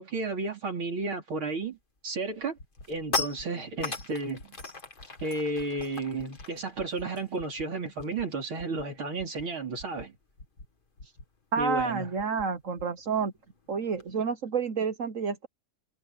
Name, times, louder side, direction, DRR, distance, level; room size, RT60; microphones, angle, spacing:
voice 1, 0.0-1.8 2.0-2.6 2.9-4.6 5.2-10.1 11.6-12.1, right 3 dB, 80° right, 4.8 m, -32 dB
sound 1, 1.7-2.0 2.4-8.3 8.6-8.8 9.1-14.1, left 3 dB, 25° left, 1.9 m, -40 dB
sound 2, 2.6-2.8 3.2-3.5 3.8-4.0 4.4-4.7 5.0-5.2 5.6-5.8 6.2-6.5 6.8-7.0 7.4-7.6 8.0-8.2 8.6-8.8 9.2-9.4 9.8-10.1 10.4-10.7 11.0-11.2 11.6-11.9 12.2-12.5 12.8-12.9, left 2 dB, 60° left, 7.9 m, -47 dB
voice 2, 11.5-13.3 13.7-15.5, right 5 dB, 50° right, 1.1 m, -29 dB
omnidirectional pair, 2.2 m